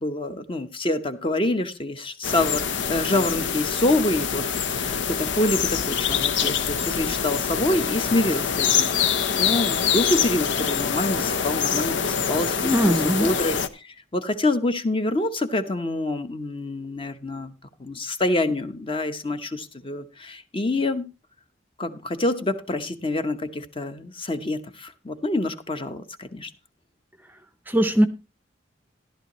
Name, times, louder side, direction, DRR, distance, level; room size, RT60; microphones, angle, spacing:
voice 1, 0.0-12.9 13.2-17.5 17.8-21.1 21.8-26.5, left 1 dB, 30° left, 8 dB, 0.9 m, -26 dB
sound 1, 2.2-13.7, left 7 dB, 75° left, 0.8 m, -25 dB
voice 2, 12.6-13.3 27.7-28.1, equal, 10° right, 10 dB, 0.6 m, -20 dB
14.0 x 11.5 x 3.0 m, 0.28 s
head